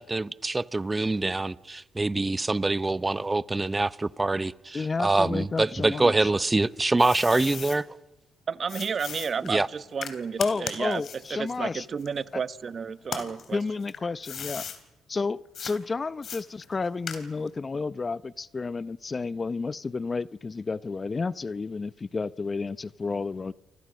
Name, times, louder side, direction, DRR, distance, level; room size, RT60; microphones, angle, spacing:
voice 1, 0.0-7.9 9.4-9.7, right 2 dB, 20° right, 0.8 m, -25 dB
voice 2, 4.7-6.3 10.4-11.9 12.3-12.4 13.5-14.6 15.1-23.5, left 4 dB, 35° left, 0.7 m, -31 dB
sound 1, 6.4-7.8 8.7-12.6 13.0-14.8 15.5-15.8 16.2-17.6, left 7 dB, 60° left, 3.4 m, -38 dB
voice 3, 8.5-11.0 11.3-13.6, right 6 dB, 50° right, 1.1 m, -32 dB
30.0 x 24.5 x 6.3 m
supercardioid pair, 65°, 0 cm